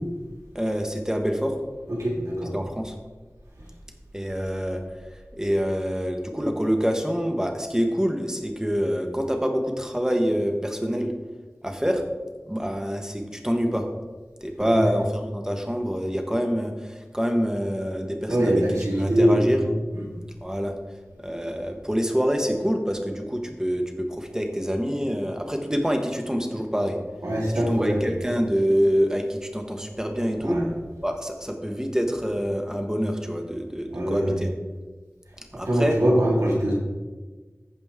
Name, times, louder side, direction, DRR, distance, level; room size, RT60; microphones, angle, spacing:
voice 1, 0.5-1.6 2.5-2.9 4.1-4.8 5.1-11.1 11.6-12.0 12.5-13.8 14.4-18.6 19.0-19.6 20.4-20.7 21.2-23.8 24.1-27.0 27.7-30.6 31.0-34.5 35.5-35.9, equal, 10° right, 4 dB, 1.3 m, -26 dB
voice 2, 1.9-2.5 14.6-14.9 18.3-20.1 27.2-28.0 30.4-30.7 33.9-34.4 35.6-36.7, equal, 85° right, -4 dB, 2.5 m, -23 dB
14.5 x 5.2 x 3.7 m, 1.3 s
wide cardioid pair, 40°, 5 cm